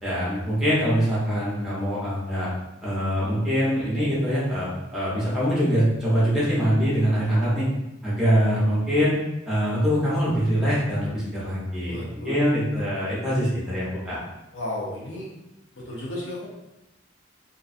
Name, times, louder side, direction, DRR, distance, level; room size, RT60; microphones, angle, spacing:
voice 1, 0.0-2.5 2.8-7.7 8.0-9.2 9.5-14.2, equal, 5° right, -10 dB, 0.8 m, -23 dB
voice 2, 11.9-12.8 14.5-15.3 15.7-16.5, left 1 dB, 70° left, -4 dB, 0.7 m, -34 dB
2.5 x 2.3 x 2.4 m, 0.94 s
head